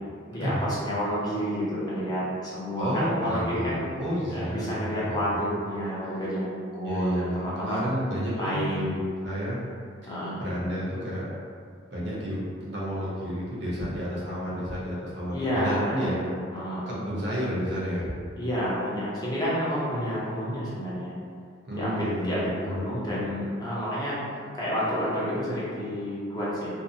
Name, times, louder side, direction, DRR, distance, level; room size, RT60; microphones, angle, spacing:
voice 1, 0.3-3.8 4.3-7.8 8.3-9.0 10.1-10.5 15.3-16.9 18.4-21.1 21.8-24.2 24.6-26.8, equal, 20° left, -8 dB, 0.6 m, -30 dB
voice 2, 2.8-5.4 6.8-9.0 9.2-9.6 10.0-10.1 10.4-11.3 11.9-16.2 16.9-18.1 21.6-23.1, equal, 60° right, -7 dB, 0.7 m, -31 dB
2.6 x 2.0 x 2.7 m, 2.2 s
head